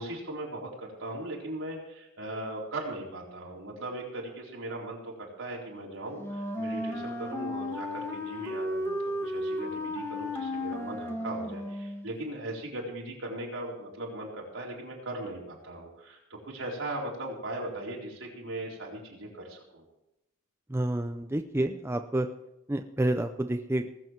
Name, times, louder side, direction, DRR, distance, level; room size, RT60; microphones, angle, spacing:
voice 1, 0.0-19.8, right 1 dB, 70° right, -3 dB, 4.2 m, -38 dB
Wind instrument woodwind instrument, 6.2-12.1, left 1 dB, 10° left, 1.6 m, -34 dB
voice 2, 20.7-22.3 22.7-23.9, right 1 dB, 10° right, 6 dB, 0.5 m, -29 dB
19.5 x 7.7 x 4.6 m, 0.87 s
head